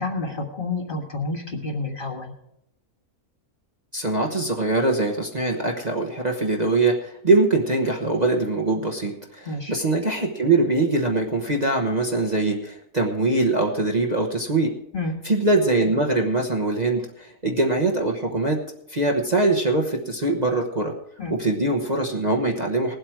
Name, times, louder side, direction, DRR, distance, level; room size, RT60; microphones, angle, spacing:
voice 1, 0.0-2.3 9.4-9.7 14.9-15.2 21.2-21.3, left 3 dB, 35° left, 2 dB, 1.7 m, -29 dB
voice 2, 3.9-14.7 15.2-18.6 18.9-20.9 21.3-22.9, right 2 dB, 30° right, 0 dB, 1.1 m, -22 dB
19.0 x 8.0 x 4.7 m, 0.78 s
omnidirectional pair, 1.6 m